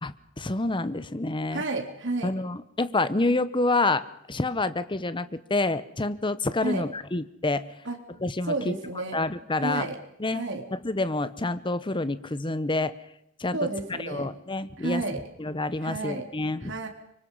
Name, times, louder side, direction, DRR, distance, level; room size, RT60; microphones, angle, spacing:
voice 1, 0.0-1.6 2.2-7.7 8.2-8.7 9.1-9.9 10.2-10.4 10.8-12.9 13.4-13.6 14.0-15.0 15.4-16.7, left 2 dB, 25° left, 14 dB, 0.9 m, -28 dB
voice 2, 1.5-2.3 6.6-6.9 7.8-8.0 8.5-9.2 9.6-10.0 10.3-10.6 13.5-14.3 14.8-15.2 15.8-16.3 16.6-16.9, right 2 dB, 65° right, 3 dB, 3.5 m, -31 dB
25.5 x 24.0 x 5.5 m, 0.77 s
head